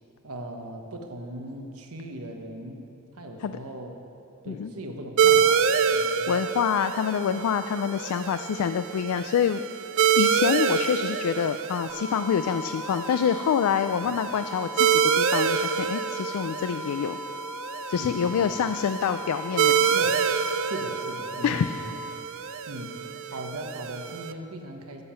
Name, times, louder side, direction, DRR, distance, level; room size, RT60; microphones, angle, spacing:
voice 1, 0.2-2.8 3.1-3.9 4.4-6.3 14.0-14.1 18.0-18.6 19.9-20.2 20.6-22.0 22.7-23.0 23.3-25.0, right 1 dB, 90° right, 3 dB, 1.1 m, -39 dB
sound 1, 5.2-24.3, right 7 dB, 65° right, 0.4 m, -27 dB
voice 2, 6.3-9.6 10.2-17.2 17.9-20.0 21.4-21.7, left 7 dB, 85° left, 10 dB, 0.3 m, -26 dB
sound 2, 11.9-21.9, left 2 dB, 10° right, 0.7 m, -39 dB
9.6 x 7.6 x 6.8 m, 2.8 s
head